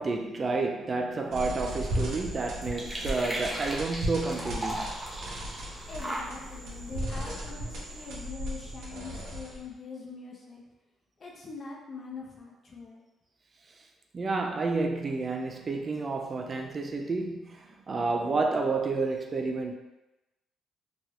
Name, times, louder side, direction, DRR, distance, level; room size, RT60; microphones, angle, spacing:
voice 1, 0.0-4.9 14.1-19.7, right 3 dB, 35° right, 3 dB, 0.3 m, -30 dB
sound 1, 1.1-8.3, right 1 dB, 10° right, 0.7 m, -39 dB
sound 2, 1.3-9.7, equal, 80° right, 0.7 m, -36 dB
voice 2, 5.9-10.6 11.2-13.0, left 4 dB, 45° left, -2 dB, 0.7 m, -43 dB
3.2 x 2.8 x 2.4 m, 0.99 s
cardioid pair, 90°, 0 cm